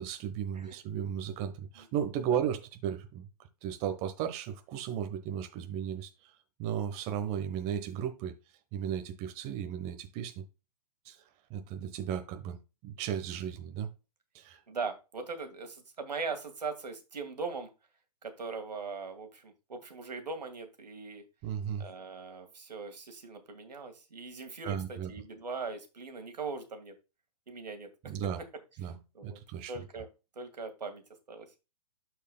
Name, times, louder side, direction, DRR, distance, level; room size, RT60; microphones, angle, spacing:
voice 1, 0.0-3.2 3.6-6.3 6.6-8.3 8.7-10.3 11.0-11.2 11.5-13.9 14.3-14.6 21.4-21.8 24.6-25.1 28.1-28.4 28.8-28.9 29.2-29.7, right 9 dB, 30° right, 1.1 m, -35 dB
voice 2, 14.7-17.7 18.2-21.2 21.8-26.9 27.5-27.9 29.1-29.4 29.7-30.1 30.4-31.0 31.3-31.5, right 4 dB, 90° right, 1.9 m, -40 dB
12.5 x 4.6 x 2.3 m
hypercardioid pair, 130°, 21 cm